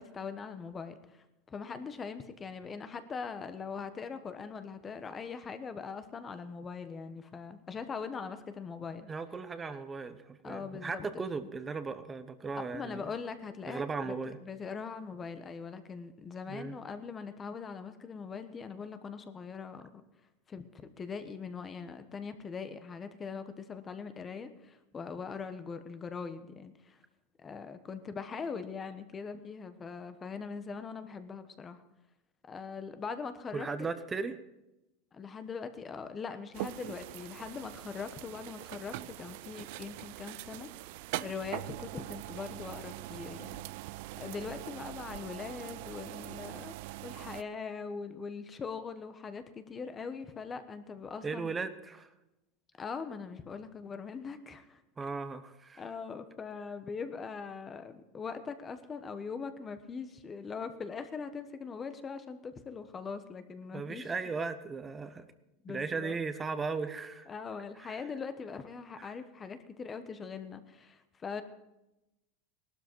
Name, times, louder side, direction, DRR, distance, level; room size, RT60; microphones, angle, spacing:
voice 1, 0.0-9.1 10.4-11.2 12.7-14.1 14.4-20.0 20.5-27.0 27.4-31.8 32.5-33.7 35.1-40.8 41.2-43.6 44.2-46.7 47.0-51.5 52.8-55.1 55.8-64.1 65.6-66.2 67.3-71.4, left 5 dB, 20° left, 10 dB, 1.2 m, -41 dB
voice 2, 9.1-13.0 13.7-14.4 16.5-16.8 33.5-34.4 51.2-52.1 55.0-55.8 63.7-65.3 65.7-67.3 67.8-68.0 69.0-69.1, right 4 dB, 15° right, 11 dB, 1.0 m, -37 dB
sound 1, 36.5-47.4, right 17 dB, 65° right, 0.5 m, -43 dB
18.0 x 12.5 x 4.6 m, 0.93 s
supercardioid pair, 145°, 0 cm